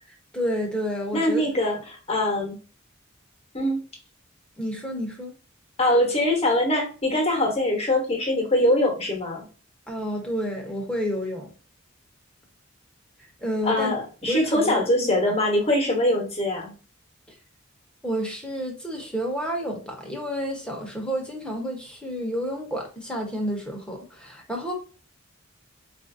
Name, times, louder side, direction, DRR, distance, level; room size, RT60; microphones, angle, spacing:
voice 1, 0.3-1.5 4.6-5.3 9.9-11.5 13.4-13.9 14.3-15.1 18.0-24.7, equal, 5° left, 0.9 m, -30 dB
voice 2, 1.1-2.6 3.5-3.8 5.8-9.5 13.6-16.7, left 1 dB, 30° left, 1.1 m, -23 dB
4.4 x 2.5 x 2.6 m
head